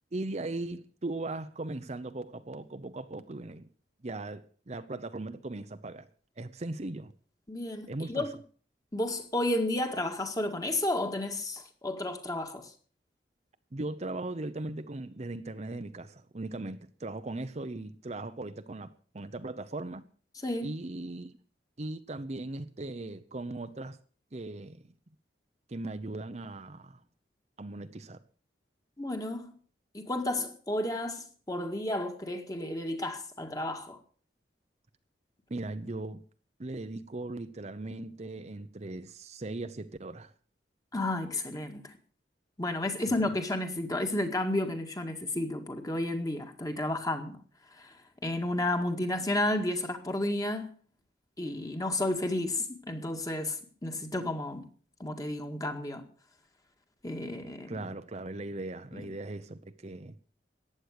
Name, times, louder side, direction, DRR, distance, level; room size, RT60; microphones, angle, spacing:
voice 1, 0.1-3.7 4.0-6.1 6.4-7.1 7.9-8.3 13.7-20.0 20.6-21.4 21.8-24.0 24.3-24.8 25.7-27.0 27.6-28.2 35.5-36.2 36.6-40.3 43.1-43.3 57.7-60.2, right 2 dB, 40° right, 0.8 m, -38 dB
voice 2, 7.5-8.3 8.9-12.7 20.4-20.8 29.0-29.5 29.9-34.0 40.9-41.9 42.6-47.4 47.8-47.9 48.2-50.7 51.4-54.7 55.0-56.0 57.0-57.8 58.9-59.0, left 1 dB, 20° left, 1.9 m, -32 dB
15.0 x 10.0 x 6.6 m
head